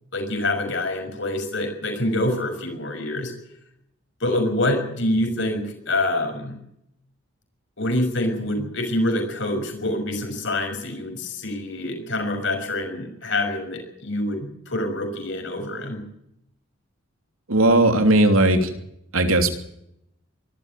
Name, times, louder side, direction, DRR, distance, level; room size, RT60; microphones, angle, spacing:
voice 1, 0.1-3.3 4.2-6.6 7.8-16.0, left 1 dB, 60° left, 5 dB, 6.0 m, -26 dB
voice 2, 17.5-18.7 19.1-19.5, right 1 dB, 85° right, 6 dB, 3.0 m, -17 dB
23.5 x 13.5 x 9.1 m, 0.79 s
head